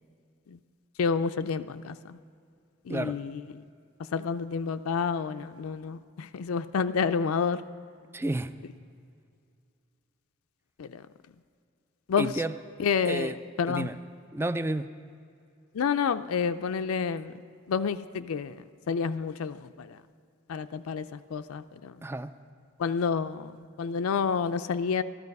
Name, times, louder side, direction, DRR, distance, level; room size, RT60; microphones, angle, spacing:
voice 1, 1.0-2.2 2.9-3.6 4.1-7.6 10.8-11.1 12.1-12.3 12.8-13.9 15.7-17.4 17.7-20.0 20.5-22.0 22.8-25.0, left 6 dB, 90° left, 10 dB, 0.4 m, -29 dB
voice 2, 2.9-3.2 8.1-8.5 12.2-12.6 13.0-13.3 13.7-14.0 14.3-14.9 22.0-22.3, right 2 dB, 10° right, 12 dB, 0.3 m, -31 dB
13.0 x 13.0 x 5.3 m, 2.4 s
head